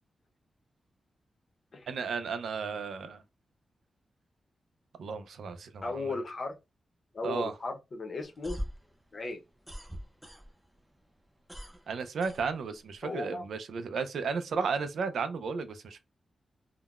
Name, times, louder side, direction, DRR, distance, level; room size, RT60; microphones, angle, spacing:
voice 1, 1.9-3.2 5.0-6.0 7.2-7.5 11.9-16.0, right 5 dB, 90° right, 0.4 m, -34 dB
voice 2, 5.8-6.6 7.1-8.6 9.1-9.4 13.0-13.4, left 3 dB, 45° left, 0.7 m, -36 dB
sound 1, 8.2-10.8 11.1-13.0, equal, 5° right, 0.5 m, -42 dB
3.7 x 2.1 x 2.3 m
wide cardioid pair, 150°, 0 cm